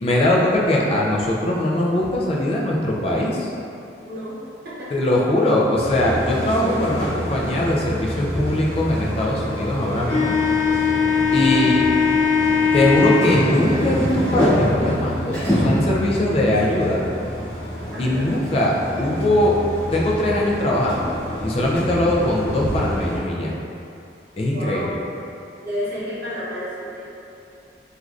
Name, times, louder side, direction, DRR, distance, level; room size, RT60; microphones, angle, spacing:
voice 1, 0.0-3.5 4.9-10.4 10.7-10.9 11.3-11.9 12.7-17.0 18.0-19.6 19.9-21.1 21.4-23.6 24.4-25.0, left 1 dB, 35° left, -3 dB, 0.3 m, -21 dB
voice 2, 4.0-4.9 11.3-11.7 17.9-18.3 24.5-25.0 25.6-27.0, equal, 55° right, -9 dB, 0.8 m, -31 dB
sound 1, 5.8-23.2, left 3 dB, 15° left, 1.0 m, -23 dB
3.2 x 2.4 x 2.4 m, 2.7 s
head